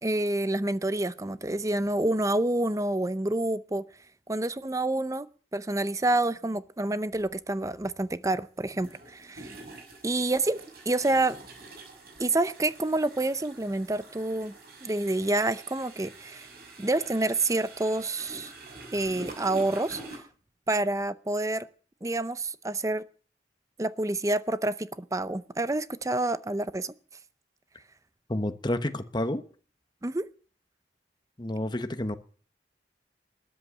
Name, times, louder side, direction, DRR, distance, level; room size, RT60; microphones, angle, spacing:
voice 1, 0.0-3.9 4.3-5.3 5.5-9.5 10.0-11.4 12.2-14.5 14.8-16.5 16.8-18.5 18.9-20.2 20.7-21.7 22.0-23.0 23.8-26.9 30.0-30.3, right 2 dB, 20° right, 0.6 m, -28 dB
sound 1, 7.2-7.3 8.6-20.2, right 2 dB, 60° right, 6.5 m, -46 dB
voice 2, 28.3-29.4 31.4-32.2, left 1 dB, 25° left, 1.1 m, -29 dB
13.5 x 10.0 x 8.3 m
head